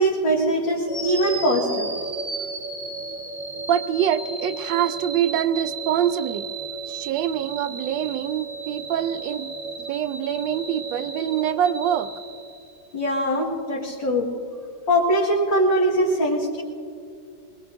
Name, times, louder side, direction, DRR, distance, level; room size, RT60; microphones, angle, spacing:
voice 1, 0.0-1.9 12.9-14.3 14.9-16.6, equal, 75° left, -7 dB, 2.5 m, -22 dB
sound 1, 0.9-13.0, right 4 dB, 25° right, 1.1 m, -34 dB
voice 2, 3.7-6.5 6.9-9.5 9.9-12.1 16.1-16.2, right 10 dB, 80° right, 11 dB, 1.3 m, -25 dB
25.0 x 21.5 x 2.6 m, 2.3 s
omnidirectional pair, 2.1 m